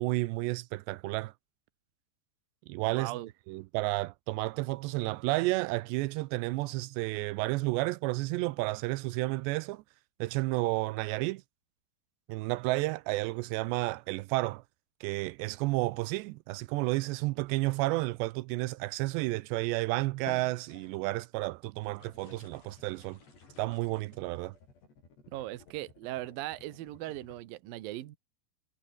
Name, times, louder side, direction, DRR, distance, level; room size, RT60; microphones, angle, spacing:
voice 1, 0.0-1.3 2.7-3.2 3.5-9.8 10.2-11.4 12.3-14.6 15.0-23.2 23.6-24.5, right 21 dB, 85° right, 2.8 m, -31 dB
voice 2, 2.9-3.3 25.3-28.2, right 16 dB, 65° right, 2.7 m, -39 dB
sound 1, 19.5-19.7 20.2-21.2 21.8-24.5, left 4 dB, 50° left, 8.2 m, -52 dB
sound 2, 21.9-27.4, left 4 dB, 70° left, 10.5 m, -58 dB
omnidirectional pair, 5.0 m